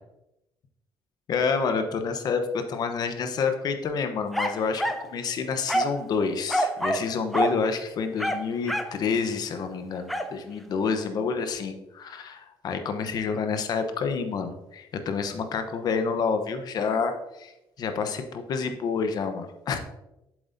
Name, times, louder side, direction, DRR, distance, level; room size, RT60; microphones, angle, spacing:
voice 1, 1.3-17.5 17.8-19.8, left 5 dB, 50° left, 7 dB, 0.9 m, -28 dB
sound 1, 4.3-5.1 5.7-6.0 6.5-7.1 7.3-7.6 8.2-9.0 10.1-10.3, right 1 dB, ahead, 0.5 m, -26 dB
7.7 x 7.6 x 2.7 m, 0.92 s
cardioid pair, 125°, 9 cm